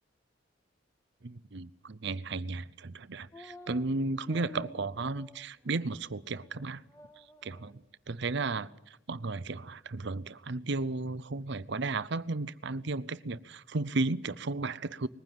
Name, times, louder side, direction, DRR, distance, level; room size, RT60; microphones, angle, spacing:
voice 1, 1.2-6.8 7.4-7.8 8.1-15.1, right 3 dB, 60° right, 0.7 m, -34 dB
sound 1, 3.3-3.8 4.2-5.4 5.8-5.9 6.3-6.6 6.9-7.7, left 1 dB, 15° left, 1.4 m, -50 dB
21.0 x 15.5 x 9.3 m
head